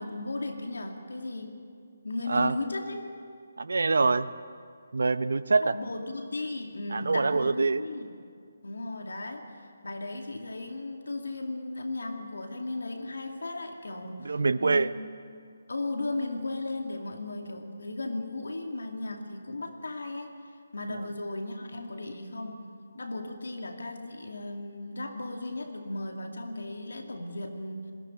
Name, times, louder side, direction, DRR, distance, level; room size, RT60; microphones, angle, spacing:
voice 1, 0.0-1.6 2.0-3.1 3.9-4.1 5.6-8.1 8.6-9.5 9.8-15.1 15.7-20.4 20.7-27.9, left 2 dB, 75° left, 3 dB, 2.5 m, -36 dB
voice 2, 3.6-4.3 4.9-5.7 6.9-7.8 14.2-14.9 20.9-21.1, right 3 dB, 70° right, 13 dB, 0.7 m, -25 dB
21.0 x 17.0 x 9.5 m, 2.2 s
figure-of-eight pair, 150°, 0 cm